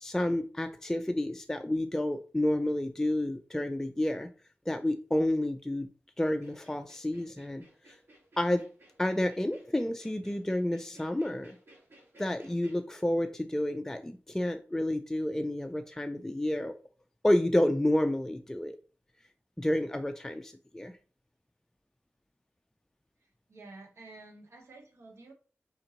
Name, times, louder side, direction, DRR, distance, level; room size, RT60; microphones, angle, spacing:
voice 1, 0.0-4.3 4.7-5.9 6.2-7.6 8.4-8.6 9.0-11.6 12.2-16.8 17.2-18.8 19.6-20.9, left 1 dB, 10° left, 6 dB, 0.4 m, -30 dB
sound 1, 6.3-12.8, right 1 dB, 55° right, 2.2 m, -59 dB
voice 2, 23.5-25.3, right 2 dB, 75° right, 2 dB, 1.1 m, -50 dB
4.4 x 3.9 x 2.9 m, 0.37 s
cardioid pair, 55°, 5 cm